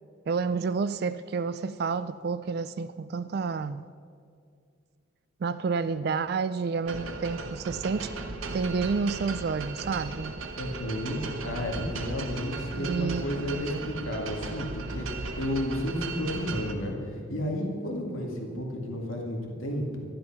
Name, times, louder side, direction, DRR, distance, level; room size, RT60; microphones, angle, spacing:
voice 1, 0.3-3.8 5.4-8.1 8.5-10.4 12.7-13.3, right 5 dB, 50° right, 13 dB, 0.3 m, -29 dB
sound 1, 6.8-16.7, right 3 dB, 80° right, 1.0 m, -37 dB
voice 2, 10.6-20.0, left 1 dB, 90° left, 1 dB, 2.1 m, -32 dB
12.5 x 11.5 x 5.9 m, 2.3 s
head